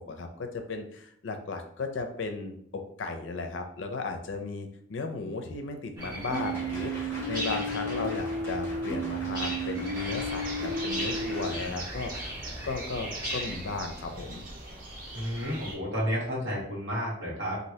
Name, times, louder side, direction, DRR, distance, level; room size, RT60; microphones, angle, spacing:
voice 1, 0.1-12.4 12.6-14.4, left 3 dB, 80° left, 5 dB, 0.5 m, -35 dB
sound 1, 6.0-13.6, equal, 20° right, 1.0 m, -38 dB
sound 2, 6.3-11.5, right 1 dB, 15° left, 0.9 m, -33 dB
sound 3, 9.9-15.8, right 2 dB, 45° right, 0.7 m, -42 dB
voice 2, 15.1-17.6, equal, 70° right, -5 dB, 1.3 m, -31 dB
3.1 x 2.5 x 2.7 m, 0.68 s
head